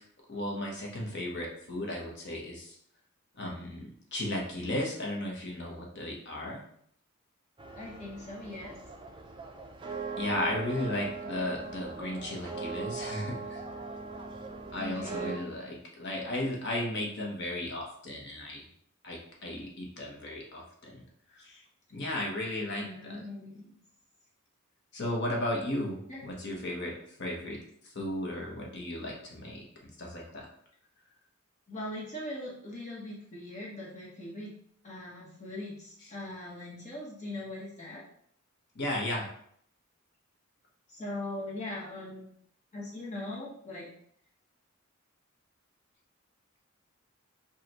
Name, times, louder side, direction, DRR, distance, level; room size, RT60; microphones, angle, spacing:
voice 1, 0.3-2.7 3.4-6.6 10.2-13.6 14.7-18.6 19.0-21.0 21.3-21.6 21.9-23.2 24.9-27.6 27.9-29.6 30.0-30.5 38.7-39.3, left 1 dB, 50° left, -1 dB, 1.0 m, -35 dB
sound 1, 7.6-15.4, right 4 dB, 20° right, 0.4 m, -40 dB
voice 2, 7.8-8.7 14.8-15.4 22.8-23.7 26.1-26.2 31.7-34.5 34.8-38.0 40.9-42.3 42.7-43.9, left 1 dB, 35° left, -5 dB, 1.2 m, -40 dB
5.1 x 2.4 x 3.0 m, 0.65 s
head